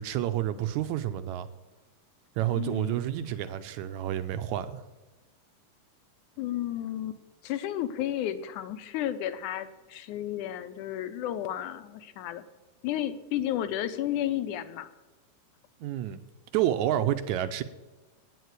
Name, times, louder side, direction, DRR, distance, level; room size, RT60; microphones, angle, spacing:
voice 1, 0.0-1.5 2.4-4.9 15.8-16.2 16.5-17.6, right 12 dB, 75° right, 11 dB, 1.9 m, -29 dB
voice 2, 2.5-3.0 6.4-12.4 12.8-14.9, left 12 dB, 75° left, 11 dB, 2.1 m, -32 dB
9.3 x 9.1 x 8.1 m, 1.2 s
omnidirectional pair, 3.8 m